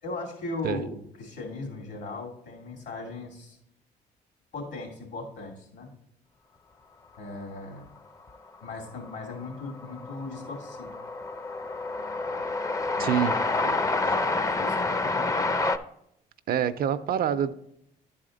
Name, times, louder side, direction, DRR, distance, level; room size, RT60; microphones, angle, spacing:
voice 1, 0.0-3.6 4.5-5.9 7.2-7.8 8.6-10.9 13.0-13.2 14.4-15.6, left 3 dB, 75° left, 2.7 m, -38 dB
Train, 8.3-8.4 8.6-15.8, left 3 dB, 20° left, 0.5 m, -28 dB
voice 2, 13.0-13.8 14.0-14.2 16.5-17.5, right 9 dB, 55° right, 0.5 m, -27 dB
10.5 x 4.2 x 3.9 m
supercardioid pair, 65°, 18 cm